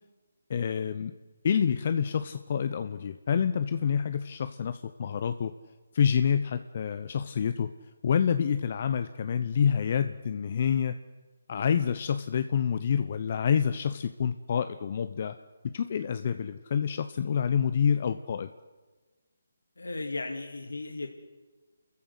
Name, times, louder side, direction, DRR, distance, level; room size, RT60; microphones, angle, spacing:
voice 1, 0.5-1.1 1.4-5.5 5.9-7.7 8.0-10.9 11.5-15.3 15.7-18.5, left 7 dB, 45° left, 10 dB, 0.9 m, -27 dB
voice 2, 19.8-21.1, left 3 dB, 90° left, 4 dB, 2.2 m, -35 dB
29.5 x 14.5 x 8.1 m, 1.3 s
figure-of-eight pair, 160°, 0 cm